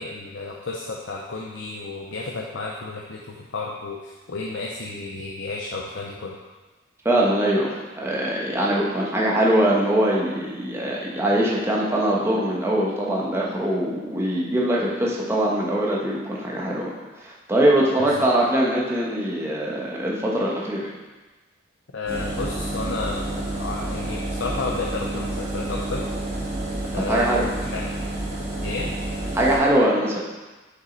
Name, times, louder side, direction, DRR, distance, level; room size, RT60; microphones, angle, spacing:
voice 1, 0.0-6.4 18.0-18.3 21.9-26.0 26.9-28.0 28.6-28.9, left 3 dB, 65° left, -2 dB, 0.6 m, -32 dB
voice 2, 7.0-16.9 17.2-20.9 27.1-27.5 29.3-30.2, right 1 dB, 15° right, -4 dB, 1.1 m, -22 dB
Engine, 22.1-29.6, right 1 dB, 35° right, 2.1 m, -29 dB
6.3 x 5.4 x 4.0 m, 1.2 s
head